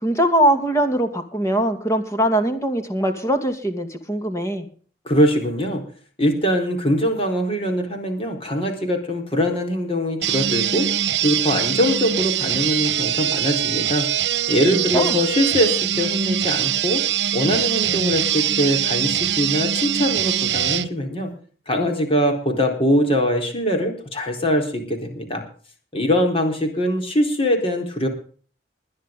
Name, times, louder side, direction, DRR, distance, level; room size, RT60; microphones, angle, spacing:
voice 1, 0.0-4.7 14.7-15.2, right 1 dB, 15° left, 6 dB, 2.4 m, -21 dB
voice 2, 5.1-5.8 6.2-10.9 11.2-14.1 14.5-17.0 17.3-21.3 21.7-25.4 25.9-28.1, equal, 35° left, 3 dB, 4.1 m, -22 dB
sound 1, 10.2-20.9, right 10 dB, 75° right, 1.1 m, -23 dB
21.0 x 10.5 x 3.8 m, 0.43 s
head